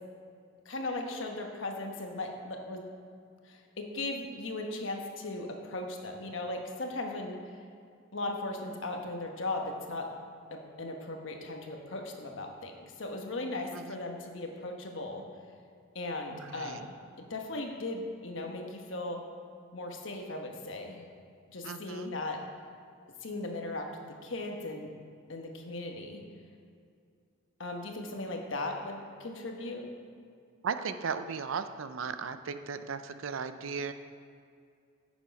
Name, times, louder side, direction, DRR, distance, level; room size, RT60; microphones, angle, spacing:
voice 1, 0.6-2.9 3.5-7.4 8.1-10.1 10.5-12.7 13.0-15.3 15.9-19.2 19.7-21.0 21.5-22.4 23.2-23.9 24.2-24.9 25.3-26.2 27.6-29.9, left 2 dB, 65° left, 2 dB, 1.2 m, -37 dB
voice 2, 16.3-16.8 21.6-22.1 30.6-33.9, right 5 dB, 70° right, 10 dB, 0.5 m, -36 dB
9.4 x 7.2 x 5.2 m, 2.3 s
head